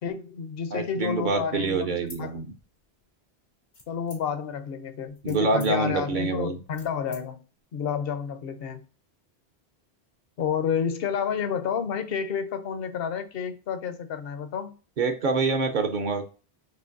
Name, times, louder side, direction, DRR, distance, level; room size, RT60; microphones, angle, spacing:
voice 1, 0.0-2.3 3.9-7.4 7.7-8.8 10.4-14.7, left 7 dB, 65° left, 0.9 m, -30 dB
voice 2, 0.7-2.5 5.2-6.6 15.0-16.4, right 4 dB, 50° right, 0.8 m, -26 dB
sound 1, 2.0-3.0 3.7-4.5 5.0-7.2, left 2 dB, 90° left, 2.3 m, -49 dB
5.7 x 3.0 x 2.5 m
omnidirectional pair, 1.1 m